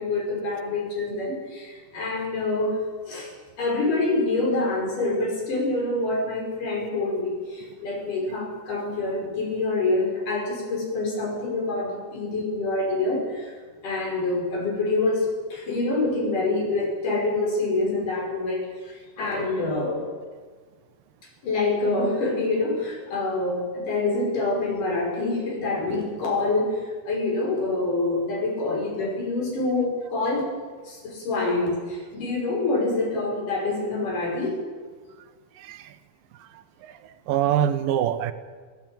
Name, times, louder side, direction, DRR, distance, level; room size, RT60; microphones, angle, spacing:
voice 1, 0.0-2.8 3.1-3.3 3.6-13.5 13.8-20.0 21.4-30.5 30.9-34.6, left 2 dB, 55° left, 0 dB, 7.0 m, -26 dB
voice 2, 35.6-36.0 36.4-38.3, right 10 dB, 70° right, 11 dB, 2.8 m, -26 dB
22.0 x 17.0 x 9.2 m, 1.5 s
omnidirectional pair, 4.5 m